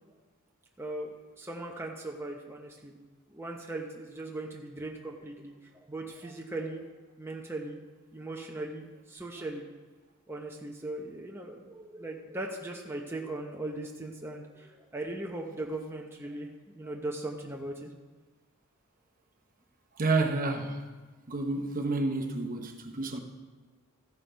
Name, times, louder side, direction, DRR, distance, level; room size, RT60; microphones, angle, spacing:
voice 1, 0.8-3.0 3.3-6.9 7.2-7.8 8.1-9.7 10.3-17.9, right 2 dB, 10° right, 0 dB, 0.7 m, -39 dB
voice 2, 20.0-20.8 21.3-23.2, right 3 dB, 40° right, 4 dB, 1.0 m, -29 dB
14.0 x 6.5 x 5.1 m, 1.3 s
head